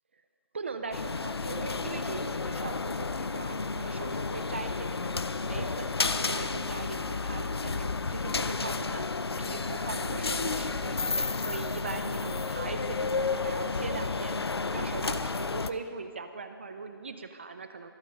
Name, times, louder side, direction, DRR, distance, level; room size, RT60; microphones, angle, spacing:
voice 1, 0.5-5.1 5.4-9.1 9.4-14.4 14.7-17.9, right 4 dB, 30° right, 8 dB, 0.6 m, -40 dB
sound 1, 0.9-15.7, left 4 dB, 90° left, 0.7 m, -31 dB
23.5 x 8.1 x 5.4 m, 2.1 s
figure-of-eight pair, 170°, 13 cm